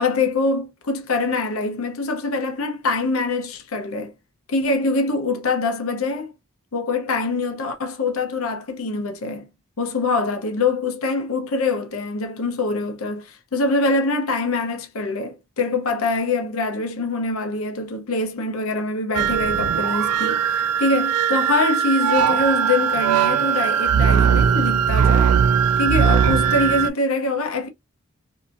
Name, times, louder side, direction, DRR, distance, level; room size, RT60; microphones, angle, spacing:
voice 1, 0.0-4.1 4.5-6.3 6.7-9.5 9.8-25.3 25.8-27.7, left 3 dB, 75° left, 0.7 m, -24 dB
sound 1, 19.1-26.9, right 7 dB, 85° right, 0.3 m, -19 dB
2.7 x 2.5 x 2.4 m
head